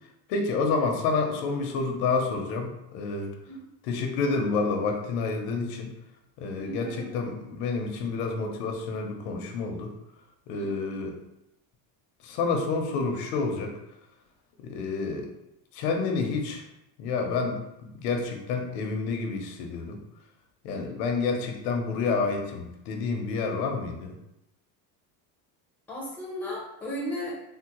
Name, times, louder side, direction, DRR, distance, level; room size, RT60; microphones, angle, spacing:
voice 1, 0.3-3.3 3.8-5.9 6.4-9.9 10.5-11.2 12.2-13.7 14.6-15.3 15.7-16.6 17.0-20.0 20.6-24.2, left 4 dB, 90° left, 3 dB, 0.8 m, -29 dB
voice 2, 6.6-7.2 10.6-11.0 20.7-21.0 25.9-27.4, equal, 5° left, -4 dB, 0.5 m, -36 dB
3.6 x 2.1 x 2.9 m, 0.85 s
cardioid pair, 160°, 43 cm